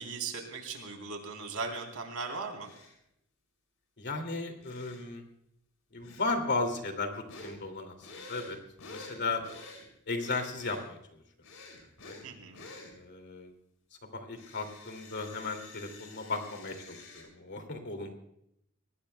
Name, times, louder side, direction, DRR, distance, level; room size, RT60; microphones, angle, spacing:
voice 1, 0.0-2.7 12.2-12.7, right 4 dB, 70° right, 4 dB, 3.5 m, -38 dB
sound 1, 2.6-3.0 4.6-5.1 6.0-6.4 7.3-7.6 8.0-9.9 10.2-10.9 11.4-12.3 12.5-12.9 14.3-17.2, left 3 dB, 70° left, 5.5 m, -49 dB
voice 2, 4.0-5.3 5.9-8.6 8.8-9.4 10.1-11.0 12.0-12.1 12.9-13.5 14.0-18.1, left 3 dB, 55° left, 5 dB, 2.5 m, -35 dB
24.5 x 19.0 x 2.2 m, 0.77 s
head